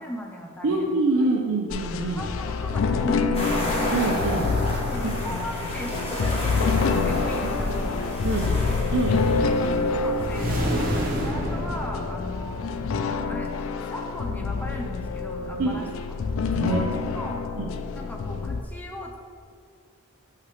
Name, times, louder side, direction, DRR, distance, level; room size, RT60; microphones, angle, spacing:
voice 1, 0.0-1.3 2.2-3.7 4.9-7.9 8.3-8.6 9.6-12.6 13.1-16.2 16.6-16.9 17.1-17.4 18.0-19.2, equal, 5° left, 1 dB, 0.5 m, -38 dB
voice 2, 0.6-2.2 3.9-4.5 7.4-7.5 8.2-8.5 8.9-9.2 15.6-15.8 16.6-16.8 17.6-17.7, right 3 dB, 70° right, -1 dB, 0.5 m, -25 dB
sound 1, 1.7-18.6, left 4 dB, 60° left, 0.3 m, -27 dB
sound 2, 3.3-11.0, equal, 25° left, 1.1 m, -31 dB
sound 3, 10.3-12.9, right 1 dB, 40° right, 0.9 m, -29 dB
6.2 x 5.7 x 3.3 m, 2.3 s
head